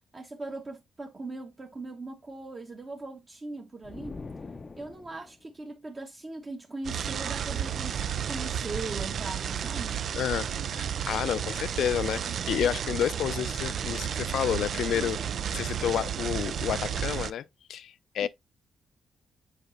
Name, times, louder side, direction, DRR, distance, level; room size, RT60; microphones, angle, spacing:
voice 1, 0.1-4.2 4.8-8.0 8.3-10.0 18.2-18.3, right 2 dB, 30° right, 1.2 m, -39 dB
sound 1, 3.8-5.4, left 3 dB, 30° left, 0.5 m, -43 dB
sound 2, 6.8-17.3, right 8 dB, 60° right, 0.4 m, -32 dB
voice 2, 10.1-10.5 10.7-15.2 15.5-18.3, left 10 dB, 80° left, 0.4 m, -30 dB
8.1 x 5.0 x 2.5 m
cardioid pair, 110°, 0 cm